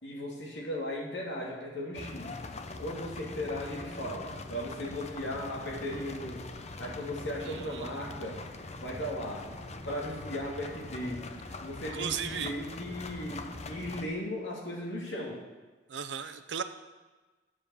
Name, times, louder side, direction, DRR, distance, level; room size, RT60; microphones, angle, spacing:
voice 1, 0.0-2.3 2.8-6.5 6.8-8.4 8.8-9.5 9.9-11.2 11.6-15.4, left 1 dB, 75° left, -3 dB, 2.4 m, -37 dB
sound 1, 1.9-14.1, left 2 dB, 40° left, 0.8 m, -42 dB
voice 2, 7.5-7.9 11.9-12.5 15.9-16.6, right 7 dB, 75° right, 10 dB, 0.7 m, -36 dB
9.7 x 7.5 x 7.0 m, 1.3 s
head